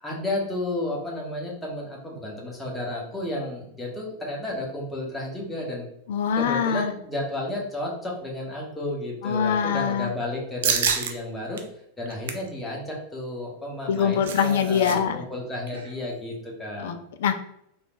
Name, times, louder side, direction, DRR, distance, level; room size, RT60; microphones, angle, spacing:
voice 1, 0.0-5.9 6.4-11.6 12.0-16.9, left 1 dB, 10° left, -3 dB, 1.2 m, -32 dB
voice 2, 6.1-6.9 9.2-10.1 13.9-15.2 16.8-17.4, left 7 dB, 55° left, 8 dB, 0.3 m, -24 dB
sound 1, 10.6-11.1 11.6-11.7 12.0-12.5 13.8-15.0 15.2-15.3 15.7-15.9, right 7 dB, 60° right, 0.4 m, -27 dB
3.5 x 3.0 x 2.4 m, 0.73 s
figure-of-eight pair, 90°, 0 cm